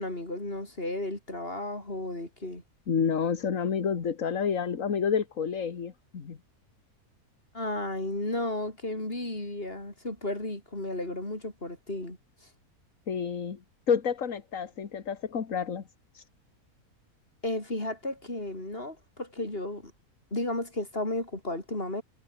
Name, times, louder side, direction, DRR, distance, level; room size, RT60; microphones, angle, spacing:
voice 1, 0.0-2.6 7.5-12.2 17.4-19.9 20.3-22.0, left 1 dB, 40° left, 6.2 m, -33 dB
voice 2, 2.9-6.4 13.1-13.6 13.9-15.8 16.1-16.2, left 6 dB, 60° left, 1.9 m, -29 dB
omnidirectional pair, 1.6 m